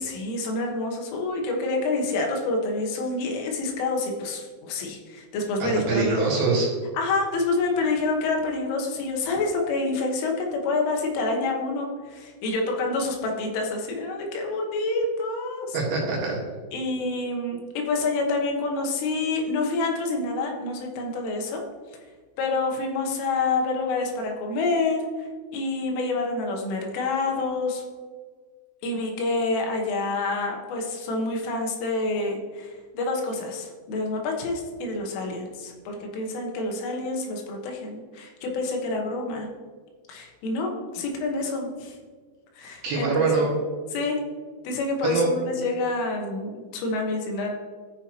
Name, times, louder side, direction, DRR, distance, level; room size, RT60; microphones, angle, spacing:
voice 1, 0.0-6.3 6.9-15.8 16.7-21.6 22.4-27.8 28.8-39.5 40.1-42.0 42.6-43.3 43.9-44.2 44.7-47.5, left 3 dB, 80° left, 1 dB, 3.8 m, -27 dB
voice 2, 5.6-6.7 15.7-16.4 42.8-43.5 45.0-45.3, right 3 dB, 60° right, -4 dB, 3.0 m, -24 dB
13.5 x 6.8 x 2.9 m, 1.5 s
omnidirectional pair, 5.7 m